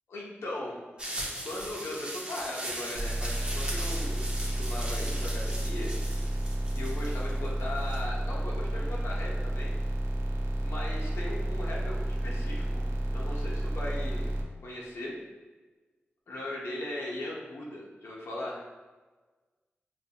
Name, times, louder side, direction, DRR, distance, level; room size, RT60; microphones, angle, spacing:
voice 1, 0.1-5.9 6.7-9.7 10.6-12.8 13.1-14.3 14.6-15.2 16.3-18.6, left 1 dB, 85° left, -4 dB, 0.7 m, -38 dB
sound 1, 1.0-8.0, right 1 dB, 20° right, 0.7 m, -39 dB
sound 2, 2.9-14.4, right 1 dB, 90° right, 0.5 m, -31 dB
5.3 x 2.6 x 2.2 m, 1.3 s
wide cardioid pair, 120°, 4 cm